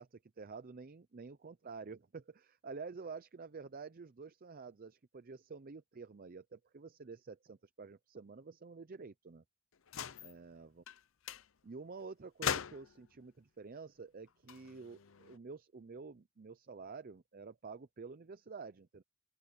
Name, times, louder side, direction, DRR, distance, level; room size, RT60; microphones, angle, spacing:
voice 1, 0.0-9.4 10.2-10.8 11.6-19.0, right 4 dB, 40° right, 0.5 m, -49 dB
sound 1, 9.9-10.3 10.9-11.0 11.3-11.5 12.4-13.1 14.3-15.4, left 8 dB, 65° left, 0.7 m, -40 dB
open air
head